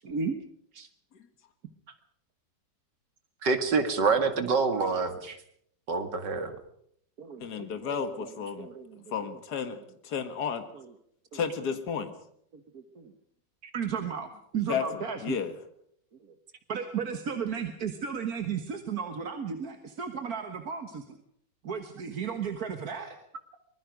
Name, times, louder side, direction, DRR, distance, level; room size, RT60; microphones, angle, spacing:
voice 1, 0.0-0.4 7.2-9.4 10.7-10.9 11.3-11.4 12.5-13.1 13.7-15.4 16.7-21.2 21.6-23.2, right 6 dB, 60° right, 6 dB, 1.9 m, -35 dB
voice 2, 3.4-5.4 5.9-6.6, right 4 dB, 75° right, 8 dB, 2.6 m, -26 dB
voice 3, 7.4-8.7 9.1-9.8 10.0-10.6 11.3-12.1 14.7-15.5, left 7 dB, 65° left, 8 dB, 2.2 m, -32 dB
24.5 x 21.0 x 5.2 m, 0.69 s
omnidirectional pair, 1.9 m